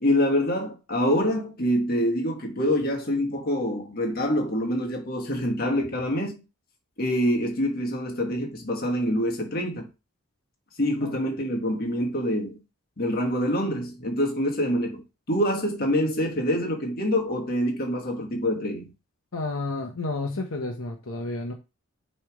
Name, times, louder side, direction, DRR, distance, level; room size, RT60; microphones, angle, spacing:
voice 1, 0.0-6.4 7.0-9.9 10.8-12.6 13.0-18.9, equal, 45° left, 1.4 m, -26 dB
voice 2, 19.3-21.5, left 2 dB, 70° left, 0.8 m, -31 dB
6.3 x 3.3 x 4.9 m
head